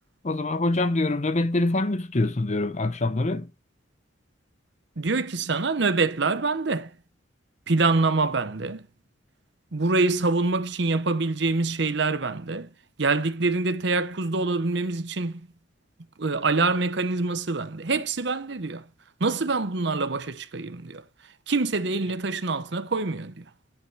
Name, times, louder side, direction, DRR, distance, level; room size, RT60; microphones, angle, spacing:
voice 1, 0.2-3.5, left 2 dB, 35° left, 0.7 m, -25 dB
voice 2, 5.0-6.9 7.7-8.8 9.7-12.7 13.0-15.4 16.2-18.8 19.2-21.0 21.5-23.3, right 3 dB, 60° right, 0.9 m, -25 dB
10.5 x 5.9 x 4.6 m
head